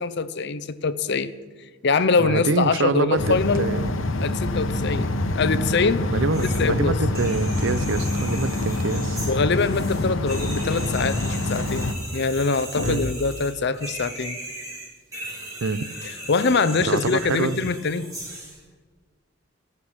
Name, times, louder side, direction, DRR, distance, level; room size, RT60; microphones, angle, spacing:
voice 1, 0.0-1.3 1.8-3.7 4.2-6.1 6.4-6.9 9.3-14.4 16.0-18.1, left 4 dB, 60° left, 14 dB, 0.7 m, -24 dB
voice 2, 2.2-4.0 6.1-9.2 12.8-13.0 15.6-15.9 16.9-17.6, right 4 dB, 75° right, 14 dB, 0.6 m, -26 dB
sound 1, 3.2-11.9, left 2 dB, 90° left, 1.0 m, -26 dB
sound 2, 6.3-6.7 7.0-18.6, right 1 dB, 20° right, 4.3 m, -38 dB
17.5 x 6.0 x 7.9 m, 1.5 s
head